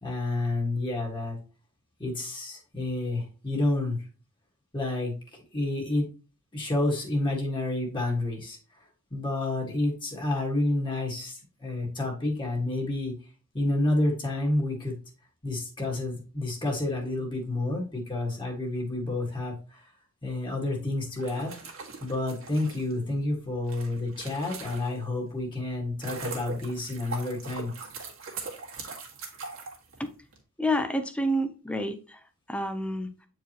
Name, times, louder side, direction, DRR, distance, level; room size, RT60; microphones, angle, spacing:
voice 1, 0.0-1.4 2.0-4.0 4.7-5.1 5.5-6.1 6.5-8.6 9.1-13.1 13.5-14.9 15.4-19.9 20.2-21.5 22.0-27.7, left 2 dB, 20° left, -1 dB, 1.7 m, -29 dB
sound 1, 21.1-25.2 25.7-30.4, right 4 dB, 65° right, 2.1 m, -41 dB
voice 2, 30.6-32.2 32.5-33.1, equal, 5° left, 7 dB, 0.6 m, -28 dB
8.8 x 4.7 x 3.0 m, 0.36 s
head